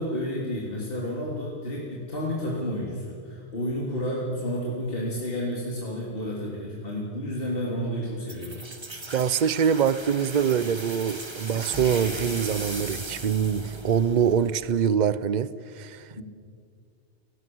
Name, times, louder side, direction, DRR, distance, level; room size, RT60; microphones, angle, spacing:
voice 1, 0.0-8.6 16.2-16.3, equal, 55° left, -4 dB, 3.5 m, -31 dB
sound 1, 8.3-14.9, right 2 dB, 25° right, 1.5 m, -38 dB
voice 2, 9.1-15.5 15.8-16.0, right 8 dB, 45° right, 17 dB, 0.8 m, -24 dB
29.5 x 18.5 x 7.8 m, 2.3 s
omnidirectional pair, 1.2 m